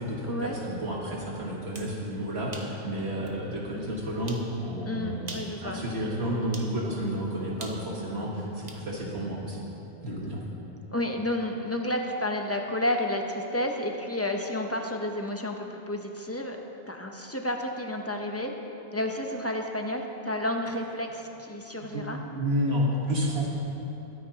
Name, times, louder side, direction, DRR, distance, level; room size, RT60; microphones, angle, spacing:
voice 1, 0.0-9.6 10.0-10.4 21.8-23.5, equal, 65° right, -3 dB, 1.7 m, -31 dB
sound 1, 1.5-1.9 2.5-2.7 3.3-3.4 4.3-4.5 5.2-5.6 6.5-6.7 7.6-8.9, right 2 dB, 35° right, 1.1 m, -42 dB
voice 2, 4.8-5.8 10.9-16.6 16.9-18.5 18.9-22.2, left 1 dB, 15° left, 2 dB, 0.7 m, -31 dB
22.5 x 9.5 x 2.9 m, 3.0 s
omnidirectional pair, 1.2 m